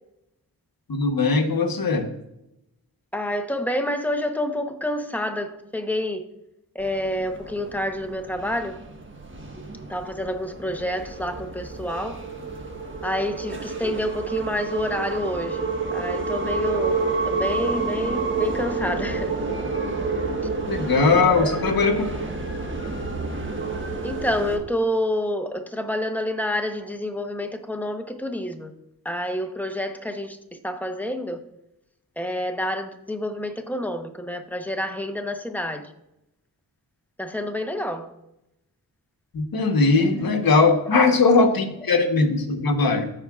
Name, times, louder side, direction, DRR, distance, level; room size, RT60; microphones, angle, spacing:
voice 1, 0.9-2.1 20.7-22.0 39.3-43.1, left 4 dB, 65° left, 5 dB, 1.2 m, -20 dB
voice 2, 3.1-6.2 6.7-8.8 9.9-12.2 13.0-17.0 17.3-19.3 21.2-21.6 22.0-22.1 24.0-28.7 29.0-30.4 30.6-31.4 32.2-35.9 37.2-38.1 40.9-41.4 41.9-42.0, left 1 dB, 5° left, 6 dB, 0.9 m, -28 dB
sound 1, 6.8-24.6, right 4 dB, 30° right, 1.3 m, -29 dB
14.0 x 4.7 x 2.4 m, 0.87 s
cardioid pair, 65°, 38 cm